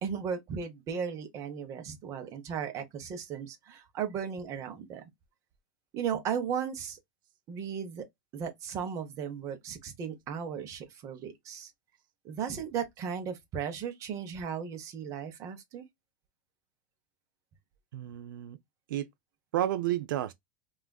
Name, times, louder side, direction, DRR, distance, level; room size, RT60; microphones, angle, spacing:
voice 1, 0.0-5.1 5.9-7.0 7.5-8.1 8.3-11.7 12.2-15.9, right 7 dB, 30° right, 0.7 m, -36 dB
voice 2, 17.9-18.6 18.9-19.1 19.5-20.3, right 12 dB, 75° right, 0.4 m, -31 dB
3.3 x 2.4 x 2.2 m
supercardioid pair, 150°, 11 cm